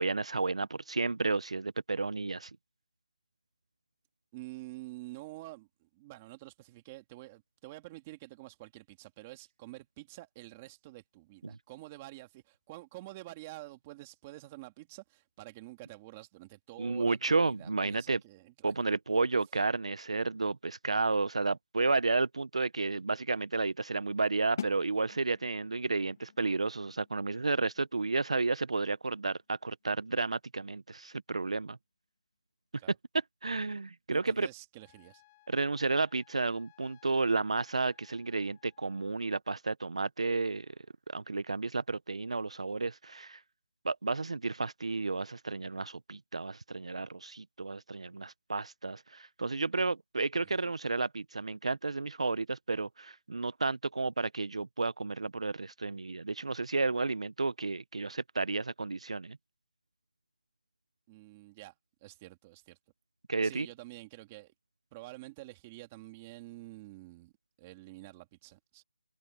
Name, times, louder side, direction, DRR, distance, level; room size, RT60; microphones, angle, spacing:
voice 1, 0.0-2.5 11.4-11.5 16.8-18.2 18.6-31.8 33.4-34.5 35.5-40.7 41.1-43.4 43.8-59.4 63.3-63.7, right 3 dB, 70° right, 0.7 m, -32 dB
voice 2, 4.3-18.9 32.8-32.9 34.1-35.2 50.4-50.7 61.1-61.7 62.0-62.8 63.4-64.5 64.9-67.3 67.6-68.8, right 19 dB, 15° right, 2.3 m, -48 dB
sound 1, 24.6-30.3, left 7 dB, 30° left, 1.4 m, -47 dB
Trumpet, 34.8-39.1, left 19 dB, 15° left, 3.8 m, -65 dB
figure-of-eight pair, 175°, 3 cm